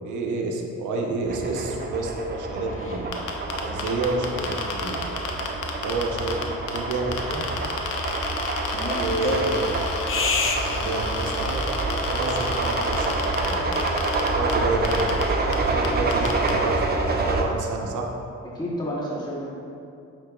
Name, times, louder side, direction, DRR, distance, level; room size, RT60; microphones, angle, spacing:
voice 1, 0.0-3.1 3.6-5.1 5.8-7.5 8.9-9.7 10.6-13.7 14.3-15.1 15.4-18.1, right 2 dB, 75° right, 1 dB, 1.0 m, -29 dB
sound 1, 1.2-17.4, right 2 dB, 30° right, 0.8 m, -27 dB
sound 2, 2.6-3.3 6.1-6.2 6.7-6.8 7.1-9.7 10.1-11.0, left 4 dB, 45° left, 0.7 m, -31 dB
sound 3, 3.1-6.4 6.7-14.5 14.8-15.2 15.5-15.6 15.8-16.5, left 5 dB, 85° left, 0.8 m, -31 dB
voice 2, 8.7-9.4 18.5-19.5, equal, 15° left, -5 dB, 1.2 m, -29 dB
8.6 x 5.6 x 2.4 m, 2.6 s
cardioid pair, 90°, 30 cm